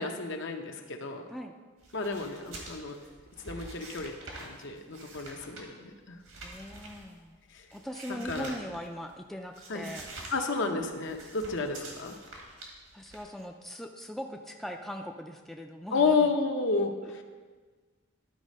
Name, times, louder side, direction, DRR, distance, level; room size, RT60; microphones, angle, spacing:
voice 1, 0.0-1.3 1.9-3.0 3.4-5.7 6.1-6.2 8.1-8.5 9.7-9.8 10.3-12.2 15.9-17.2, left 4 dB, 65° left, 4 dB, 0.8 m, -31 dB
sound 1, 1.8-9.1 9.5-10.4 10.6-13.5, right 2 dB, 85° right, 1.8 m, -47 dB
voice 2, 6.4-7.3 7.7-10.1 12.9-16.3 17.0-17.2, equal, ahead, 3 dB, 0.4 m, -40 dB
12.0 x 4.1 x 5.3 m, 1.5 s
head